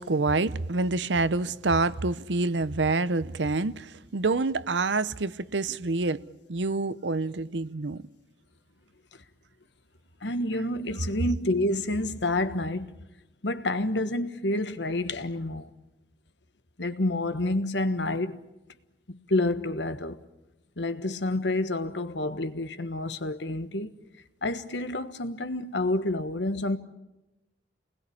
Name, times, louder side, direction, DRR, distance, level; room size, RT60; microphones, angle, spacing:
voice 1, 0.0-6.2 6.5-8.0, right 3 dB, 75° right, 0.8 m, -27 dB
voice 2, 10.2-12.9 13.4-15.7 16.8-18.4 19.1-20.2 20.8-23.9 24.4-26.8, left 2 dB, 75° left, 1.4 m, -28 dB
28.5 x 20.5 x 8.7 m
head